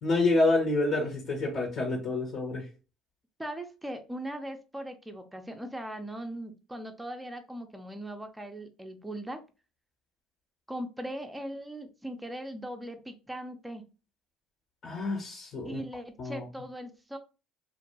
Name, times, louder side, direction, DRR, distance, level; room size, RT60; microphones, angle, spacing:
voice 1, 0.0-2.6 14.8-15.8 16.2-16.4, left 2 dB, 60° left, -1 dB, 1.3 m, -28 dB
voice 2, 3.4-9.4 10.7-13.8 15.6-17.2, right 1 dB, 5° right, 5 dB, 0.7 m, -39 dB
2.8 x 2.6 x 2.7 m, 0.31 s
supercardioid pair, 90°, 0 cm